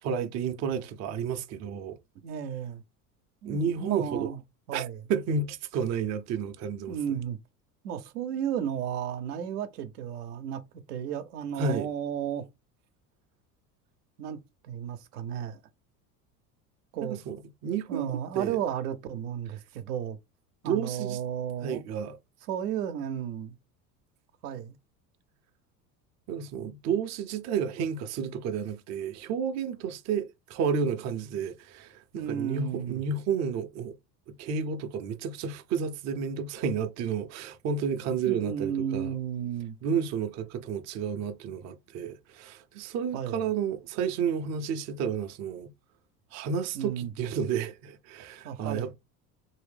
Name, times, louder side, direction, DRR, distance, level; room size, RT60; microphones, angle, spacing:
voice 1, 0.0-2.0 3.4-4.3 4.7-7.0 11.6-11.9 17.0-17.4 17.6-18.6 20.6-21.2 21.6-22.2 26.3-34.0 34.3-39.2 39.8-45.7 46.3-49.0, right 6 dB, 35° right, 0.5 m, -31 dB
voice 2, 2.2-2.8 3.4-4.4 4.7-5.0 6.9-7.4 7.8-10.6 10.9-12.5 14.2-15.6 16.9-17.2 17.9-20.2 20.6-21.8 22.5-23.5 24.4-24.8 32.1-33.0 38.3-39.8 43.1-43.5 46.7-47.1 48.4-48.9, right 9 dB, 75° right, 0.7 m, -33 dB
3.1 x 2.7 x 3.3 m
hypercardioid pair, 75°, 47 cm